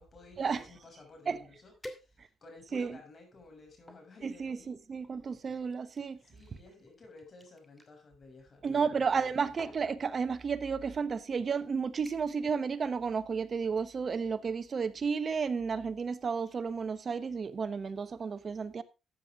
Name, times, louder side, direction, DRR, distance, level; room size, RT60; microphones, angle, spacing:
voice 1, 0.0-4.7 6.2-9.1, left 3 dB, 40° left, 6.8 m, -54 dB
sound 1, 1.8-2.6 3.2-4.1 5.0-7.9 9.0-9.2 9.6-9.9 10.8-10.9 11.3-11.6 12.0-12.5 12.8-13.1 13.5-13.6, equal, 5° left, 2.6 m, -52 dB
voice 2, 4.2-6.2 8.6-18.8, right 5 dB, 40° right, 1.1 m, -32 dB
14.0 x 9.3 x 3.7 m
cardioid pair, 90°, 0 cm